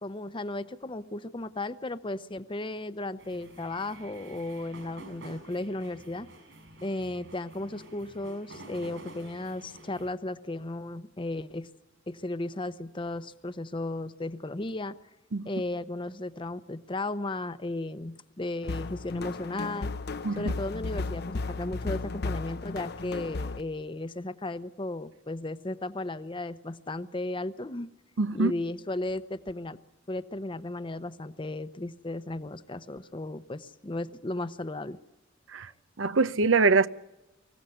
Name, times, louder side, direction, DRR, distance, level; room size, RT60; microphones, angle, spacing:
voice 1, 0.0-6.3 6.8-11.7 12.1-15.0 15.5-19.9 20.4-27.9 28.3-29.8 30.1-35.0, left 2 dB, 25° left, 0.8 m, -35 dB
sound 1, 3.2-10.1, right 1 dB, 70° right, 6.1 m, -49 dB
sound 2, 18.6-23.6, left 3 dB, 55° left, 0.7 m, -34 dB
voice 2, 28.2-28.5 35.5-35.7 36.0-36.9, right 4 dB, 90° right, 0.7 m, -23 dB
24.5 x 16.0 x 7.9 m
head